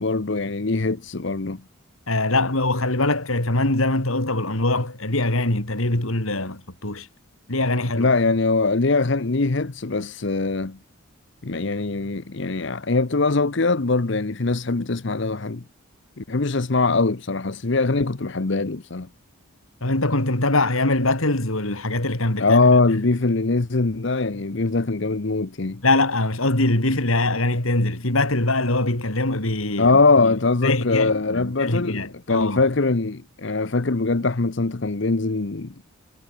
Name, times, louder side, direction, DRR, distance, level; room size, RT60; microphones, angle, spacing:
voice 1, 0.0-1.6 8.0-10.8 11.4-15.6 16.2-19.1 22.4-25.8 29.8-35.8, left 3 dB, 55° left, 0.9 m, -22 dB
voice 2, 2.1-7.1 7.5-8.1 19.8-22.8 25.8-30.4 30.6-32.6, left 2 dB, 75° left, 3.7 m, -23 dB
head